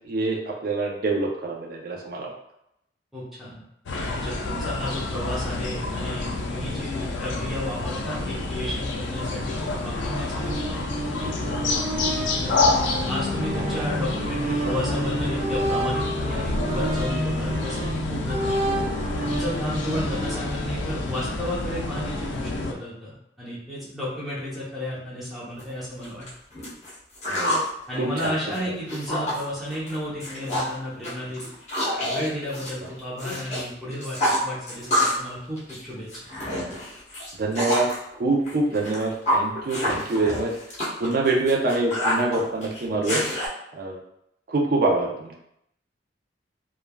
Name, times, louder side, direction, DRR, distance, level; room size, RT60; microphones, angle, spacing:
voice 1, 0.1-2.3 13.6-13.7 27.3-27.6 28.0-28.3 37.4-37.9 38.2-40.5 41.0-43.2 43.7-43.9 44.5-45.3, right 2 dB, 55° right, -1 dB, 0.5 m, -25 dB
voice 2, 3.1-3.6 4.2-10.5 12.4-12.6 13.1-18.6 19.3-26.3 27.9-31.5 32.1-36.1, equal, ahead, -9 dB, 0.7 m, -33 dB
sound 1, 3.9-22.7, left 3 dB, 80° left, 0.4 m, -29 dB
sound 2, 10.4-21.0, right 1 dB, 20° right, 1.4 m, -30 dB
sound 3, 25.6-25.7 26.0-27.7 28.0-29.4 29.7-29.9 30.2-30.7 31.0-33.6 33.9-35.3 35.6-38.0 38.5-43.5, left 1 dB, 40° left, 0.9 m, -27 dB
3.2 x 2.3 x 2.2 m, 0.78 s
head